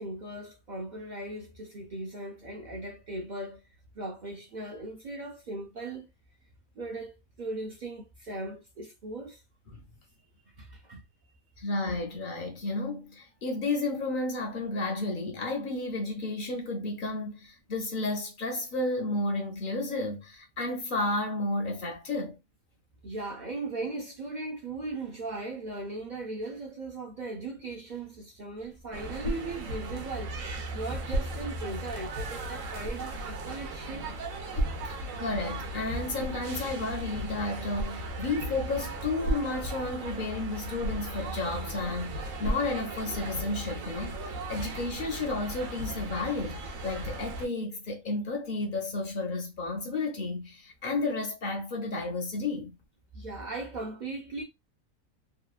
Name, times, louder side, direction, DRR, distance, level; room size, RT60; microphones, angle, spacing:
voice 1, 0.0-3.6 3.9-6.1 6.7-9.4 10.6-11.0 23.0-30.4 30.7-34.1 53.1-54.4, right 2 dB, 60° right, 0.5 m, -38 dB
voice 2, 11.6-22.4 34.0-34.1 35.2-52.8, left 2 dB, 50° left, 0.6 m, -32 dB
sound 1, 28.6-43.5, equal, 80° left, 1.1 m, -39 dB
sound 2, 28.9-47.5, right 1 dB, 75° right, 1.0 m, -37 dB
2.8 x 2.3 x 2.3 m
omnidirectional pair, 1.4 m